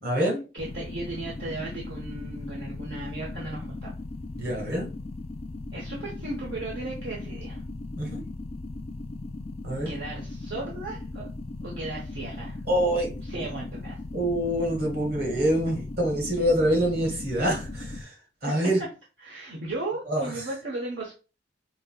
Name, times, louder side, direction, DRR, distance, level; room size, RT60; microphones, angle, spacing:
voice 1, 0.0-0.4 4.3-4.9 7.9-8.2 9.6-9.9 12.7-13.2 14.1-18.1 18.4-18.8 20.1-20.3, right 1 dB, 55° right, 0 dB, 1.6 m, -25 dB
voice 2, 0.5-3.9 5.7-7.6 9.8-11.3 11.6-12.6 13.2-14.0 18.5-18.7 19.2-21.1, right 2 dB, 75° right, -2 dB, 0.9 m, -36 dB
sound 1, 0.6-18.0, left 2 dB, 35° left, 0.3 m, -38 dB
5.1 x 2.7 x 2.3 m, 0.33 s
head